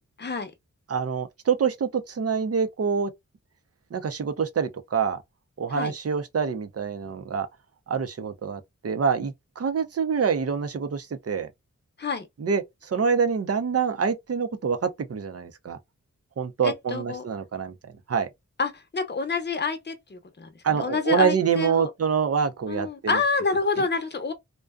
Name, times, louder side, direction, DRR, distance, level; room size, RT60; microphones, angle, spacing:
voice 1, 0.2-0.5 5.7-5.9 12.0-12.3 16.6-17.2 18.6-21.9 22.7-24.3, left 4 dB, 35° left, 0.8 m, -28 dB
voice 2, 0.9-3.1 3.9-5.2 5.6-7.5 7.9-11.5 12.4-15.8 16.4-17.7 18.1-18.3 20.6-23.2, right 6 dB, 50° right, 0.6 m, -26 dB
2.5 x 2.2 x 2.3 m
cardioid pair, 60°, 31 cm